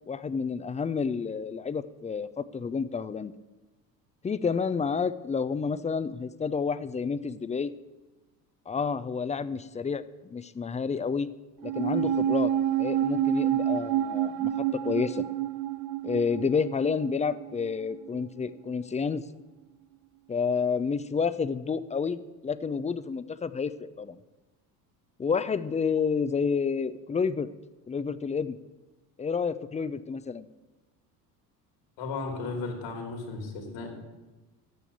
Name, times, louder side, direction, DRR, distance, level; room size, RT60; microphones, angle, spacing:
voice 1, 0.1-3.3 4.2-7.7 8.7-11.3 11.6-12.5 12.8-15.2 16.0-19.2 20.3-24.2 25.2-27.5 27.9-28.6 29.2-30.5, left 5 dB, 15° left, 14 dB, 0.5 m, -29 dB
sound 1, 11.6-18.2 18.4-18.5, right 10 dB, 55° right, 0.5 m, -29 dB
voice 2, 32.0-33.9, left 3 dB, 70° left, 3 dB, 2.9 m, -35 dB
9.4 x 6.2 x 8.4 m, 1.1 s
hypercardioid pair, 65°, 46 cm